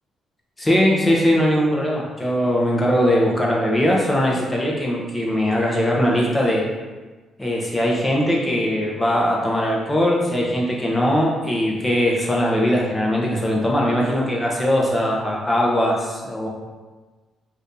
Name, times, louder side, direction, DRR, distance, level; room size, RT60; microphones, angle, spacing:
voice 1, 0.6-6.7 7.4-16.5, equal, 15° left, -3 dB, 0.8 m, -20 dB
2.7 x 2.7 x 3.6 m, 1.3 s
cardioid pair, 90°, 0 cm